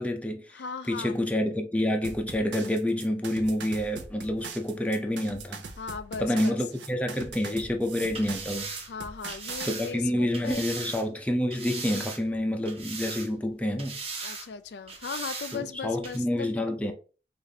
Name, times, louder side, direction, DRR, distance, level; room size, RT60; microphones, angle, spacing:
voice 1, 0.0-0.6 0.9-5.6 6.2-8.7 9.6-14.0 15.5-16.9, left 1 dB, 5° left, 0.4 m, -28 dB
voice 2, 0.5-1.2 5.8-6.6 8.9-10.6 14.2-16.6, left 5 dB, 70° left, 0.4 m, -37 dB
sound 1, 2.0-9.7, right 5 dB, 80° right, 0.6 m, -41 dB
sound 2, 8.1-11.1 11.5-12.4 12.7-13.5 13.8-14.5 14.9-15.6 16.0-16.2, right 4 dB, 35° right, 0.8 m, -38 dB
4.8 x 2.5 x 2.7 m
head